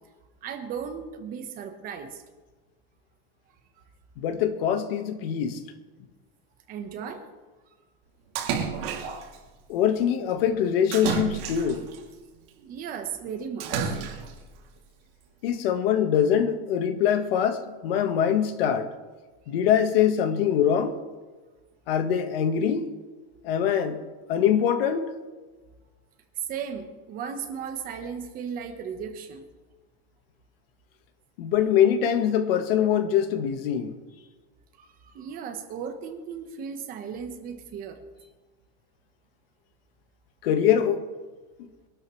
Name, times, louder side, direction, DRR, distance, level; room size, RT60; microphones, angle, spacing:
voice 1, 0.4-2.2 6.7-7.2 12.6-14.0 26.5-29.4 34.8-38.0, right 7 dB, 25° right, 1.2 m, -36 dB
voice 2, 4.2-5.6 9.7-11.8 15.4-18.9 19.5-21.0 21.9-22.9 23.4-24.0 24.3-25.1 31.4-33.9 40.4-41.1, left 9 dB, 60° left, 1.6 m, -23 dB
Splash splatter, 8.4-9.4 10.9-12.0 13.6-14.4, right 7 dB, 60° right, 2.8 m, -30 dB
23.0 x 12.5 x 3.2 m
supercardioid pair, 175°, 33 cm